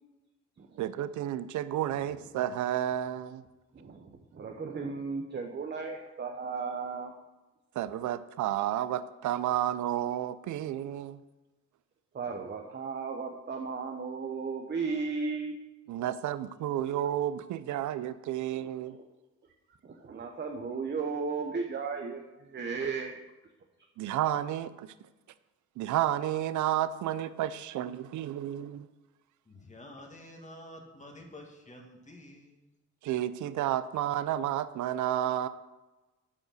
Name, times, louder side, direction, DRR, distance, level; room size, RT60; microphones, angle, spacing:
voice 1, 0.8-3.4 7.7-11.2 15.9-19.0 24.0-24.9 25.8-28.9 33.0-35.5, right 12 dB, 75° right, 14 dB, 0.6 m, -31 dB
voice 2, 3.7-7.1 12.1-15.5 16.0-16.1 18.9-19.0 19.8-23.1, right 5 dB, 35° right, 3 dB, 0.9 m, -35 dB
voice 3, 29.5-32.5, left 1 dB, 25° left, 2 dB, 2.0 m, -49 dB
8.7 x 5.1 x 6.4 m, 1.1 s
cardioid pair, 90°, 30 cm